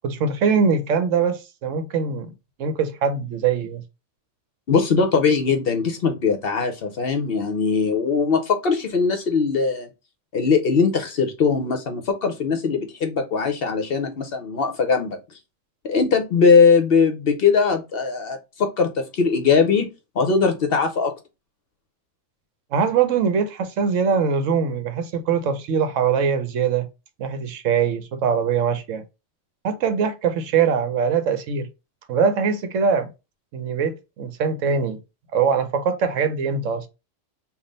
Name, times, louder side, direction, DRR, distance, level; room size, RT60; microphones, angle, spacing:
voice 1, 0.0-2.3 2.6-3.8 22.7-26.9 27.2-29.0 29.6-31.7 32.1-33.1 33.5-35.0 35.3-36.9, right 6 dB, 75° right, 1.0 m, -22 dB
voice 2, 4.7-9.9 10.3-15.2 15.8-19.9 20.2-21.1, left 5 dB, 55° left, 0.7 m, -20 dB
3.5 x 2.3 x 3.8 m
omnidirectional pair, 1.3 m